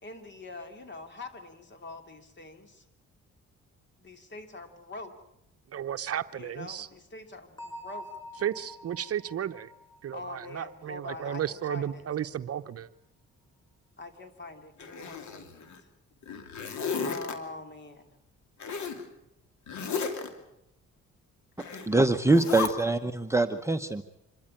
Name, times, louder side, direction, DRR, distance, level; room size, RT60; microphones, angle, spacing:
voice 1, 0.0-2.8 4.0-5.1 6.3-8.1 10.1-12.1 14.0-15.7 17.0-18.1, left 3 dB, 35° left, 7 dB, 3.1 m, -44 dB
voice 2, 5.7-6.9 8.4-9.7 10.0-12.9, right 10 dB, 50° right, 10 dB, 0.8 m, -33 dB
Bell, 7.6-11.2, equal, 15° left, 2.8 m, -47 dB
Zipper (clothing), 14.8-15.8 16.2-17.3 18.6-19.0 19.7-20.3 21.6-21.9 22.3-22.7, left 5 dB, 70° left, 2.8 m, -34 dB
voice 3, 21.9-24.0, right 2 dB, 10° right, 6 dB, 0.9 m, -24 dB
26.0 x 13.5 x 8.9 m, 0.83 s
cardioid pair, 90°, 30 cm